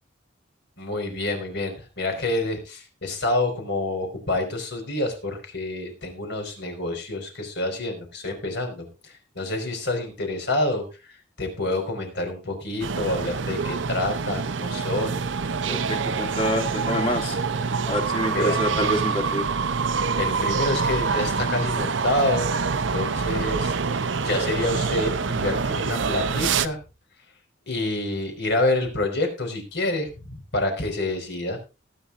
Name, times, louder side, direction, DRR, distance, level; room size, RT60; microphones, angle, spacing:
voice 1, 0.8-15.2 18.3-18.9 20.2-23.8 24.2-26.8 27.7-31.6, left 2 dB, 65° left, 4 dB, 4.9 m, -28 dB
sound 1, 12.8-26.7, right 5 dB, 70° right, 0.7 m, -26 dB
voice 2, 15.7-17.4 17.9-19.4, equal, 30° left, 2 dB, 2.6 m, -26 dB
19.5 x 10.0 x 2.5 m, 0.31 s
head